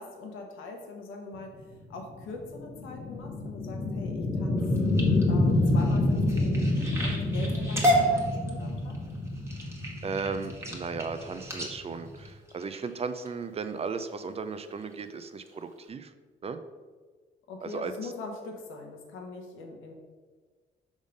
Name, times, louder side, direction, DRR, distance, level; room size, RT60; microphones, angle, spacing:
voice 1, 0.0-4.6 5.3-9.0 17.5-19.9, left 3 dB, 85° left, 2 dB, 1.1 m, -42 dB
sound 1, 1.6-12.3, left 2 dB, 30° left, 0.8 m, -28 dB
sound 2, 4.6-13.3 13.9-14.2 14.6-15.0 15.4-15.5 15.9-16.0, equal, 15° right, 1.3 m, -32 dB
voice 2, 10.0-16.1 16.4-16.6 17.6-18.1, right 5 dB, 30° right, 10 dB, 0.5 m, -36 dB
5.4 x 3.7 x 5.1 m, 1.4 s
cardioid pair, 90°, 20 cm